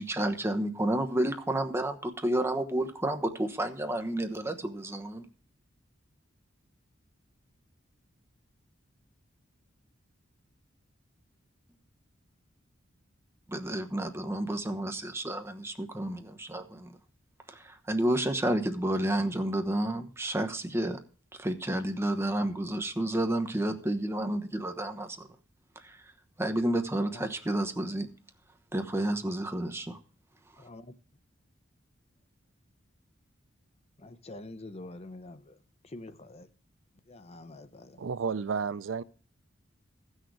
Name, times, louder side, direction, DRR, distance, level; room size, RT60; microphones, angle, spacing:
voice 1, 0.0-5.3 13.5-16.9 17.5-21.0 21.4-25.3 25.8-25.9 26.4-28.1 28.7-30.0, right 1 dB, 15° right, 1.1 m, -30 dB
voice 2, 27.0-27.4 30.6-30.9 34.0-35.6 35.8-36.5 37.1-38.0, left 2 dB, 35° left, 0.7 m, -46 dB
voice 3, 38.0-39.0, right 5 dB, 75° right, 0.5 m, -31 dB
14.5 x 6.5 x 4.7 m
head